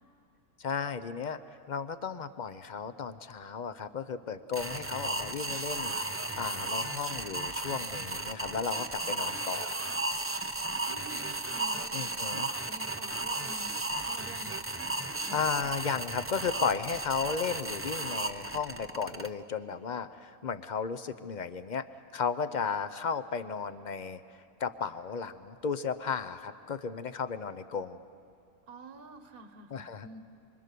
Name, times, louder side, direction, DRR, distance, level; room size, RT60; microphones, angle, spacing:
voice 1, 0.6-1.4 1.7-9.8 11.9-12.5 15.3-21.9 22.1-24.2 24.6-28.0 29.7-30.1, left 6 dB, 45° left, 11 dB, 0.6 m, -34 dB
sound 1, 4.5-19.3, right 2 dB, 20° right, 0.4 m, -34 dB
voice 2, 10.8-11.3 11.5-11.9 12.3-14.6 28.7-30.2, right 3 dB, 40° right, 7 dB, 1.3 m, -48 dB
25.0 x 25.0 x 6.8 m, 2.4 s
omnidirectional pair, 1.5 m